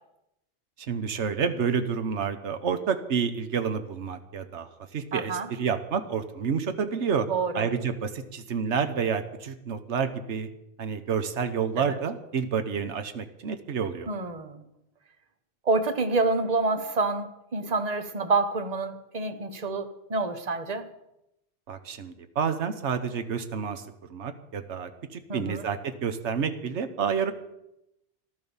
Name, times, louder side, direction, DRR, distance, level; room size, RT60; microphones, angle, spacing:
voice 1, 0.8-7.3 7.5-10.5 10.8-14.1 21.7-23.8 24.1-27.3, right 6 dB, 75° right, 8 dB, 1.3 m, -29 dB
voice 2, 5.1-5.5 7.3-7.7 11.8-12.0 14.1-14.6 15.6-20.9 25.3-25.6, right 3 dB, 35° right, 8 dB, 1.2 m, -28 dB
14.5 x 12.0 x 7.1 m, 0.86 s
omnidirectional pair, 1.2 m